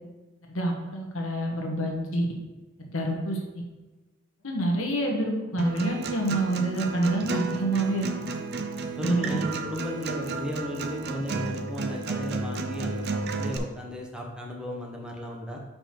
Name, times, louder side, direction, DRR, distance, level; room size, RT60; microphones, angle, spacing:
voice 1, 0.5-2.2 2.9-3.6 4.4-8.1 9.0-9.4, right 1 dB, 85° left, 1 dB, 1.4 m, -27 dB
Acoustic guitar, 5.6-13.6, right 3 dB, 50° right, 0.6 m, -32 dB
voice 2, 9.0-13.0 13.4-15.6, equal, 5° right, -1 dB, 1.0 m, -35 dB
5.3 x 4.6 x 5.9 m, 1.2 s
head